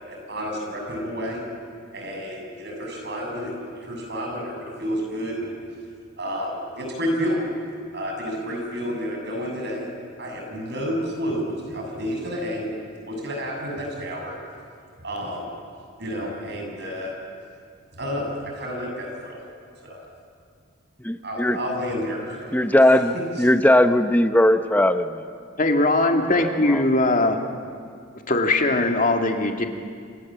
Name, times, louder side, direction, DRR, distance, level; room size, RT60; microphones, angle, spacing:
voice 1, 0.0-1.4 1.9-5.6 6.2-7.4 7.9-9.9 10.2-12.7 13.1-14.4 15.0-15.5 16.0-17.1 17.9-19.4 19.8-20.0 21.2-22.6 22.9-23.0 23.4-23.5, equal, 55° right, 1 dB, 7.1 m, -30 dB
voice 2, 21.0-21.6 22.5-25.2 26.4-26.8, left 1 dB, 10° left, 9 dB, 0.8 m, -19 dB
voice 3, 25.6-27.4 28.3-29.7, left 2 dB, 40° left, 3 dB, 2.3 m, -20 dB
28.5 x 27.0 x 7.6 m, 2.2 s
head